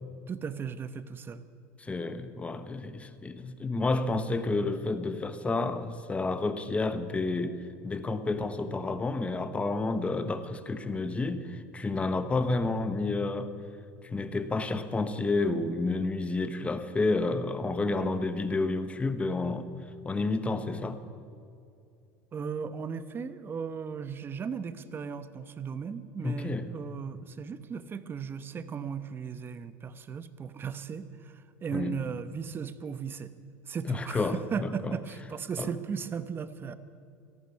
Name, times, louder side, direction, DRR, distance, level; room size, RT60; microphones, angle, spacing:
voice 1, 0.3-1.4 22.3-33.3 33.7-36.7, right 6 dB, 30° right, 12 dB, 0.9 m, -36 dB
voice 2, 1.8-13.5 14.0-19.7 20.0-21.0 26.2-26.7 31.7-32.0 33.9-34.9 35.6-35.7, left 3 dB, 15° left, 11 dB, 1.1 m, -30 dB
17.5 x 13.5 x 5.8 m, 2.6 s
supercardioid pair, 105°, 7 cm